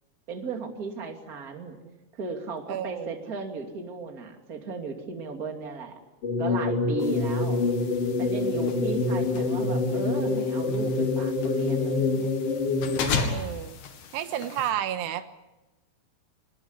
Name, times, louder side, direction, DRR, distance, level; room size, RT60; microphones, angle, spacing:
voice 1, 0.3-1.8 2.1-6.0 6.4-7.7 8.2-12.3, right 4 dB, 25° right, 3 dB, 2.6 m, -35 dB
voice 2, 2.7-3.3 13.3-13.8 14.1-15.3, right 10 dB, 85° right, 10 dB, 3.2 m, -31 dB
sound 1, 6.2-13.1, left 3 dB, 40° left, 3.3 m, -26 dB
sound 2, 7.0-14.7, left 4 dB, 75° left, 4.3 m, -36 dB
24.0 x 20.5 x 9.8 m, 1.0 s
omnidirectional pair, 4.8 m